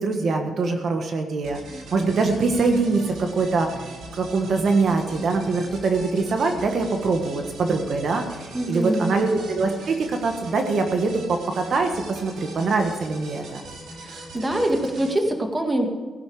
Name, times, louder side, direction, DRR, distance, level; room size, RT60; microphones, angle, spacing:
voice 1, 0.0-1.6 1.9-3.7 4.2-13.6, right 3 dB, 55° right, 4 dB, 1.5 m, -23 dB
sound 1, 1.4-15.1, right 2 dB, 85° right, 3.6 m, -41 dB
voice 2, 8.5-9.2 13.9-15.9, right 1 dB, 20° right, 3 dB, 1.9 m, -24 dB
16.5 x 10.5 x 4.9 m, 1.4 s
cardioid pair, 120°, 0 cm